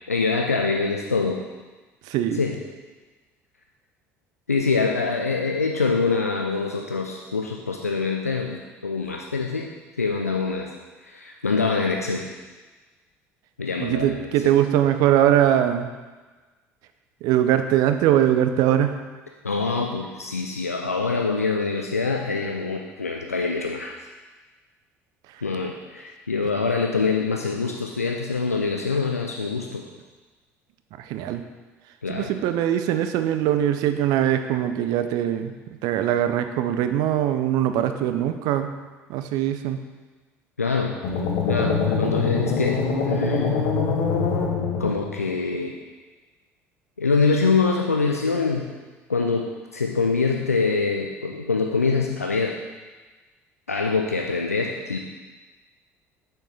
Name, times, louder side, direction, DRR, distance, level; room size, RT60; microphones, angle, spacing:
voice 1, 0.1-1.4 2.3-2.6 4.5-9.7 10.0-10.7 11.0-12.3 13.6-14.3 19.4-24.0 25.4-29.8 32.0-32.3 40.6-41.0 41.5-43.6 44.8-45.8 47.0-48.7 49.1-49.5 49.7-52.6 53.7-55.0, left 4 dB, 90° left, 1 dB, 0.4 m, -24 dB
voice 2, 2.1-2.4 13.8-15.9 17.2-19.0 31.0-31.4 32.1-35.5 35.8-38.7 39.1-39.8, right 11 dB, 60° right, 9 dB, 0.5 m, -21 dB
sound 1, 41.0-45.3, left 5 dB, 65° left, 0.8 m, -24 dB
6.4 x 6.4 x 3.3 m, 1.3 s
figure-of-eight pair, 60°, 8 cm